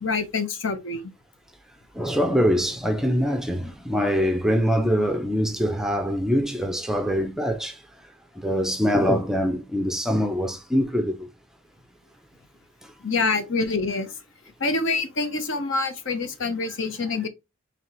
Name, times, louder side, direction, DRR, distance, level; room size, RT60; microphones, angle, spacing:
voice 1, 0.0-1.0 13.0-14.1 14.6-17.3, left 3 dB, 65° left, 0.8 m, -26 dB
voice 2, 1.9-7.8 8.4-11.3, equal, ahead, 0.4 m, -23 dB
4.2 x 3.3 x 3.0 m
head